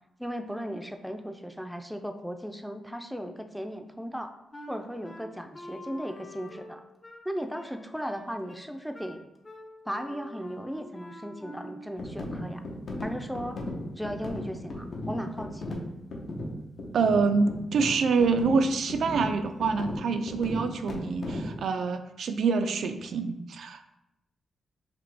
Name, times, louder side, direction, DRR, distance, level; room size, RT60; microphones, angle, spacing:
voice 1, 0.2-4.3 4.7-6.8 7.2-9.2 9.9-12.6 13.0-13.6 14.0-15.9, equal, ahead, 6 dB, 0.5 m, -36 dB
Wind instrument woodwind instrument, 4.5-12.0, left 1 dB, 35° left, 0.8 m, -46 dB
sound 1, 12.0-21.6, left 1 dB, 65° left, 0.9 m, -36 dB
voice 2, 16.9-23.8, right 4 dB, 75° right, 8 dB, 0.3 m, -26 dB
5.0 x 2.9 x 3.3 m, 0.86 s
cardioid pair, 75°, 0 cm